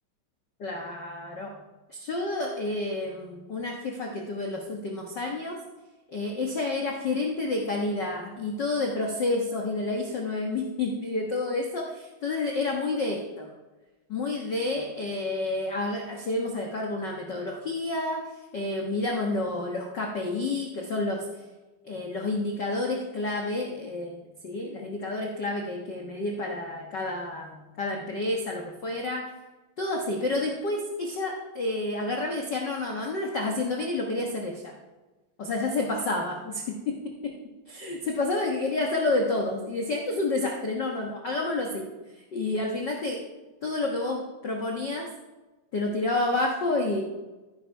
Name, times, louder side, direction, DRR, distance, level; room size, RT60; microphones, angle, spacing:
voice 1, 0.6-1.6 1.9-5.6 6.1-13.5 14.1-18.2 18.5-21.3 21.8-29.2 29.8-34.7 35.4-36.9 37.7-41.8 42.3-43.2 43.6-45.1 45.7-47.0, left 2 dB, 75° left, 1 dB, 1.0 m, -29 dB
14.5 x 10.0 x 4.6 m, 1.1 s
omnidirectional pair, 4.2 m